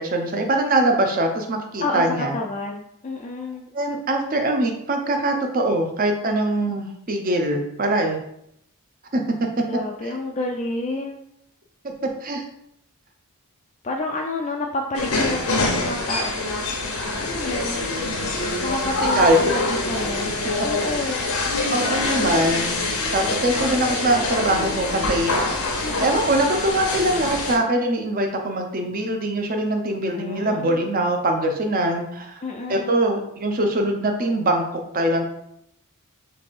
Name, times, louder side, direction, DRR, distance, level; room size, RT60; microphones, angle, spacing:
voice 1, 0.0-2.4 3.7-8.2 9.1-9.2 12.2-12.4 19.2-19.6 21.0-21.1 21.7-22.8 23.1-25.7 26.0-32.4 32.7-34.6 34.9-35.2, right 1 dB, 40° right, 4 dB, 0.6 m, -22 dB
voice 2, 2.3-3.7 9.7-11.2 13.8-16.7 17.2-17.8 18.6-20.3 20.6-21.3 25.8-26.2 30.1-30.8 32.4-33.0, left 2 dB, 30° left, 0 dB, 0.4 m, -29 dB
sound 1, 14.9-27.6, left 2 dB, 80° left, 0.9 m, -25 dB
3.3 x 3.3 x 4.2 m, 0.75 s
head